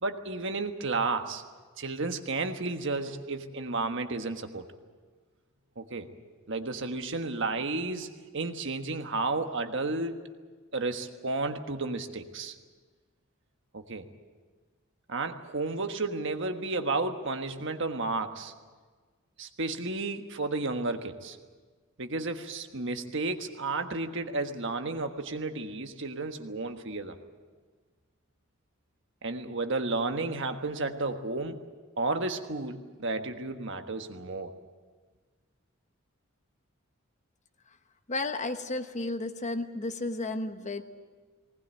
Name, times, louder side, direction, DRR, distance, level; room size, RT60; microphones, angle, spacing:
voice 1, 0.0-1.4 1.8-4.6 5.8-6.1 6.5-10.3 10.7-12.5 13.7-14.1 15.1-18.5 19.4-21.4 22.0-27.2 29.2-31.7 32.0-34.5, right 3 dB, 60° right, 6 dB, 1.4 m, -32 dB
voice 2, 38.1-40.8, left 2 dB, 35° left, 8 dB, 1.1 m, -33 dB
20.5 x 19.0 x 9.0 m, 1.5 s
head